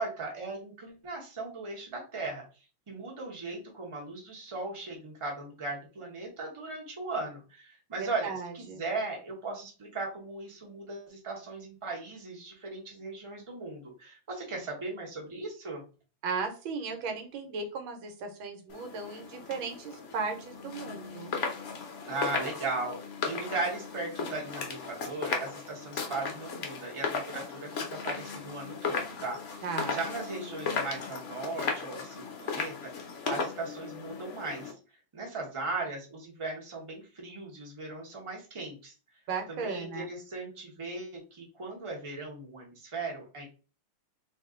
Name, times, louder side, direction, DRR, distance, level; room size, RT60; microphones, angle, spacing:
voice 1, 0.0-2.4 2.9-15.8 22.0-34.7 35.1-38.9 39.5-43.4, right 3 dB, 20° right, -1 dB, 0.8 m, -38 dB
voice 2, 8.0-8.8 16.2-21.3 29.6-30.0 39.3-40.1, right 4 dB, 90° right, 5 dB, 1.6 m, -36 dB
sound 1, 18.7-34.7, left 5 dB, 55° left, 0.8 m, -36 dB
3.0 x 2.8 x 3.7 m, 0.34 s
omnidirectional pair, 2.1 m